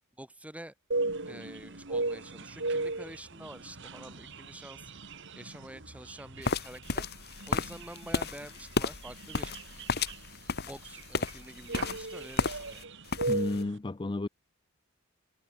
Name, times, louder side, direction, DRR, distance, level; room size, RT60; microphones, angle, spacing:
voice 1, 0.2-0.7 1.2-4.9 5.3-7.1 7.5-9.5 10.6-12.9, right 1 dB, 5° right, 6.0 m, -47 dB
sound 1, 0.9-13.8, right 2 dB, 55° right, 2.7 m, -37 dB
sound 2, 6.4-12.8 13.1-13.6, left 4 dB, 45° left, 2.1 m, -33 dB
voice 2, 13.3-14.3, left 2 dB, 20° left, 0.4 m, -32 dB
head